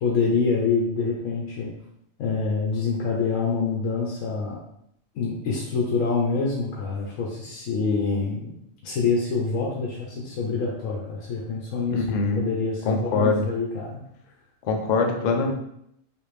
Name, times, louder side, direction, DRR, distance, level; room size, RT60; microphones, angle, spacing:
voice 1, 0.0-1.7 2.2-4.6 5.1-8.4 8.8-14.0, left 4 dB, 80° left, -3 dB, 1.0 m, -26 dB
voice 2, 11.9-12.5 12.8-13.5 14.6-15.5, left 3 dB, 60° left, 2 dB, 0.4 m, -23 dB
3.4 x 2.6 x 3.2 m, 0.75 s
omnidirectional pair, 1.4 m